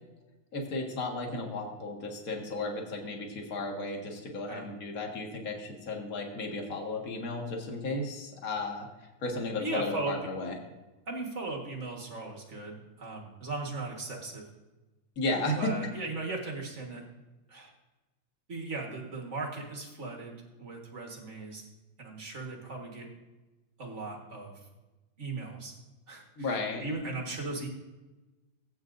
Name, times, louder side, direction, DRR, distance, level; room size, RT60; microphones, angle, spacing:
voice 1, 0.5-8.9 9.2-10.5 15.1-15.7 26.4-26.8, left 2 dB, 35° left, 0 dB, 1.5 m, -34 dB
voice 2, 9.6-10.2 11.1-14.5 15.6-17.0 17.5-17.7 18.5-21.6 22.0-23.1 23.8-24.6 25.2-25.7 26.1-27.7, right 3 dB, 40° right, 0 dB, 1.0 m, -37 dB
16.5 x 8.8 x 2.6 m, 1.1 s
omnidirectional pair, 3.6 m